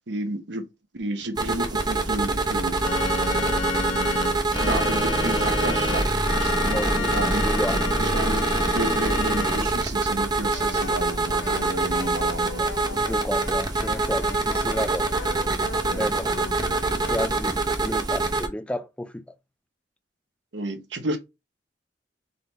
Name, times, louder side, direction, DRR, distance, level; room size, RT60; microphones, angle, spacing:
voice 1, 0.1-0.7 0.9-2.9 4.6-7.4 7.7-12.6 12.9-13.0 15.9-16.1 20.5-21.2, right 1 dB, 80° right, 1.0 m, -31 dB
sound 1, 1.4-18.5, right 2 dB, 25° right, 0.8 m, -25 dB
Organ, 2.8-9.6, left 3 dB, 30° left, 1.2 m, -29 dB
voice 2, 6.7-7.8 12.6-15.1 15.9-16.4 16.9-19.2, left 1 dB, 5° left, 0.4 m, -32 dB
sound 2, 10.3-17.3, left 4 dB, 90° left, 0.9 m, -39 dB
4.2 x 3.9 x 3.2 m
head